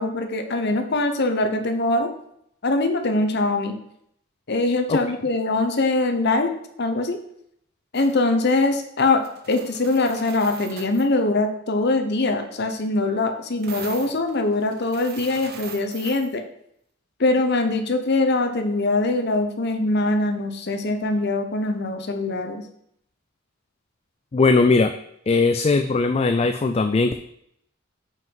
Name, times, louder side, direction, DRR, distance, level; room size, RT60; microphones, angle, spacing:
voice 1, 0.0-2.1 2.6-3.8 4.5-6.5 6.8-7.2 7.9-16.4 17.2-22.6, left 2 dB, 55° left, 6 dB, 0.9 m, -22 dB
sound 1, 7.9-8.2 8.5-8.7 9.1-11.1 13.6-16.3, right 6 dB, 50° right, 0.8 m, -41 dB
voice 2, 24.3-24.9 25.3-27.2, left 3 dB, 30° left, 8 dB, 0.3 m, -19 dB
5.6 x 5.4 x 5.4 m, 0.72 s
head